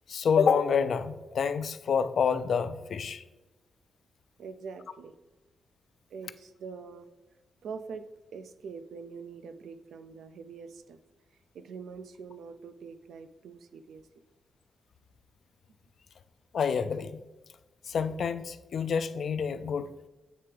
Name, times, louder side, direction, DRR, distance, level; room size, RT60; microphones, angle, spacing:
voice 1, 0.1-3.2 16.5-17.2 17.9-19.9, left 6 dB, 65° left, 0.3 m, -28 dB
voice 2, 4.4-5.1 6.1-7.1 7.6-8.0 8.3-11.0 11.5-14.1, right 5 dB, 85° right, 0.4 m, -44 dB
8.5 x 3.3 x 3.3 m
cardioid pair, 105°, 0 cm